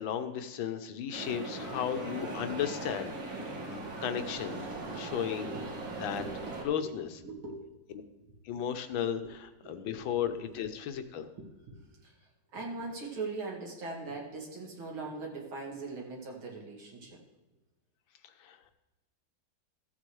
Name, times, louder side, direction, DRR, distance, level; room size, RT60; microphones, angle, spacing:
voice 1, 0.0-3.5 4.0-4.6 5.0-5.5 6.0-6.2 6.6-7.2 8.4-11.3 18.4-18.6, left 9 dB, 80° left, 8 dB, 1.6 m, -34 dB
sound 1, 1.1-6.6, right 2 dB, 70° right, 2.6 m, -39 dB
voice 2, 5.3-6.9 7.2-7.6 9.6-10.5 11.3-12.1 12.5-17.2, right 3 dB, 90° right, -1 dB, 3.0 m, -41 dB
14.0 x 8.4 x 3.2 m, 1.1 s
omnidirectional pair, 2.2 m